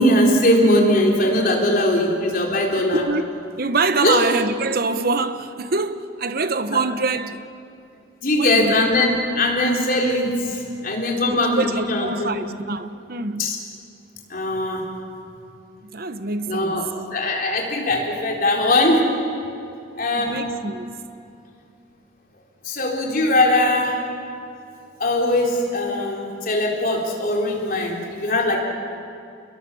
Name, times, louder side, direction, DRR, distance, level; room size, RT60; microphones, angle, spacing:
voice 1, 0.0-3.0 4.0-4.2 6.7-6.8 8.2-12.4 13.4-13.6 14.3-14.9 16.5-16.8 17.1-19.1 20.0-20.5 22.6-24.0 25.0-28.6, left 1 dB, 45° left, 3.9 m, -20 dB
voice 2, 2.9-3.2 3.6-7.5 8.4-8.7 11.3-13.5 15.8-16.9 20.1-20.9, right 3 dB, 50° right, 1.0 m, -25 dB
28.5 x 21.5 x 7.1 m
head